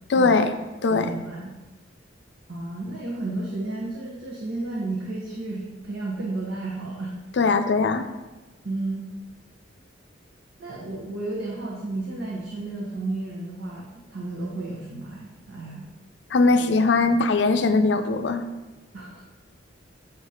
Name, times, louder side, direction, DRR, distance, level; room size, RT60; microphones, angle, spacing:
voice 1, 0.1-0.5 0.8-1.1 7.4-8.1 16.3-18.4, left 3 dB, 65° left, 8 dB, 0.4 m, -20 dB
voice 2, 0.9-1.5 2.5-7.1 8.6-9.1 10.6-15.9 18.9-19.2, right 2 dB, 90° right, -5 dB, 1.0 m, -32 dB
7.2 x 2.8 x 4.9 m, 1.1 s
head